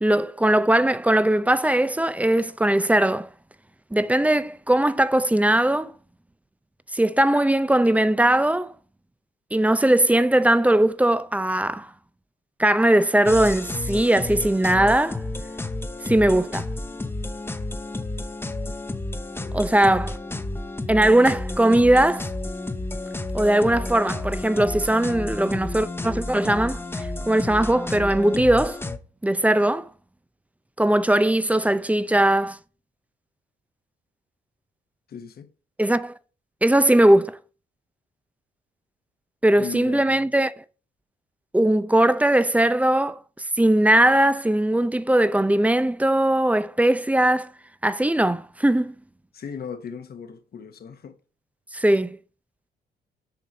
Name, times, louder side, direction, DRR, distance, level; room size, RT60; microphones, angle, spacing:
voice 1, 0.0-3.3 3.9-5.9 6.9-8.7 9.5-11.9 12.6-15.2 16.0-16.7 19.5-20.1 20.9-22.3 23.3-28.8 29.2-29.9 30.8-32.6 35.8-36.1 36.6-37.4 39.4-40.5 41.5-43.2 43.6-47.5 47.8-48.9 51.7-52.2, right 1 dB, 5° right, 0.5 m, -20 dB
sound 1, 13.2-29.0, left 2 dB, 10° left, 0.8 m, -31 dB
voice 2, 19.4-20.0 35.1-35.5 39.6-40.3 49.3-51.2, left 6 dB, 50° left, 1.1 m, -38 dB
7.0 x 4.7 x 5.9 m
cardioid pair, 90°, 20 cm